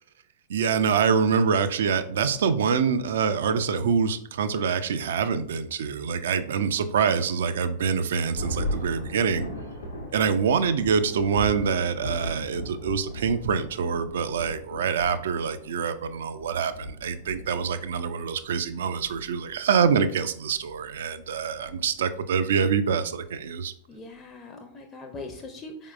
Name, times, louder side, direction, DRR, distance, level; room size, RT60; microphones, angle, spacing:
voice 1, 0.5-9.5 10.1-23.7, right 6 dB, 60° right, 12 dB, 0.3 m, -25 dB
Thunder, 8.3-22.3, equal, 80° left, 0.8 m, -37 dB
voice 2, 23.9-25.9, left 2 dB, 20° left, 2 dB, 0.5 m, -41 dB
4.5 x 3.6 x 2.4 m, 0.63 s
figure-of-eight pair, 90°, 0 cm